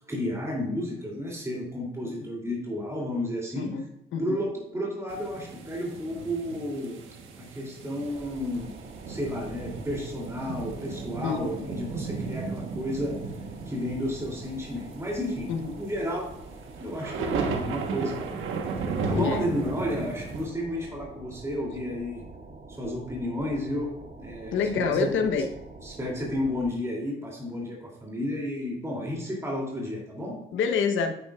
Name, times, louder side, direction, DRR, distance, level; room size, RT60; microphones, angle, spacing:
voice 1, 0.1-3.7 4.2-7.0 7.4-8.7 9.1-13.2 13.7-16.3 16.8-18.4 19.1-22.2 22.7-23.9 24.2-25.1 25.8-30.4, left 1 dB, 15° right, -2 dB, 2.9 m, -32 dB
sound 1, 5.1-20.5, right 4 dB, 85° right, 1.2 m, -35 dB
sound 2, 8.1-26.7, right 3 dB, 40° right, 2.5 m, -46 dB
voice 2, 11.2-11.5 15.5-15.7 19.1-19.5 24.5-25.5 30.5-31.1, left 5 dB, 80° left, 6 dB, 1.0 m, -26 dB
9.1 x 8.9 x 2.4 m, 0.89 s
cardioid pair, 90°, 20 cm